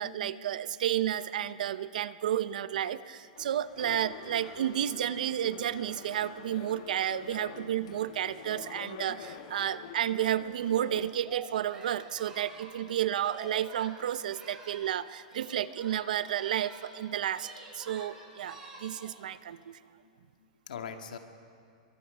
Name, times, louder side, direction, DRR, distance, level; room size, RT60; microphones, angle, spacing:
voice 1, 0.0-17.5 17.7-19.8, right 11 dB, 75° right, 14 dB, 0.8 m, -32 dB
sound 1, 3.3-11.1, left 7 dB, 55° left, 2.0 m, -46 dB
Singing, 11.1-15.0 15.2-17.0 17.3-19.2, right 3 dB, 15° right, 5.8 m, -48 dB
voice 2, 20.0-21.2, left 7 dB, 85° left, 5 dB, 2.0 m, -44 dB
26.5 x 23.0 x 5.4 m, 2.3 s
supercardioid pair, 160°, 4 cm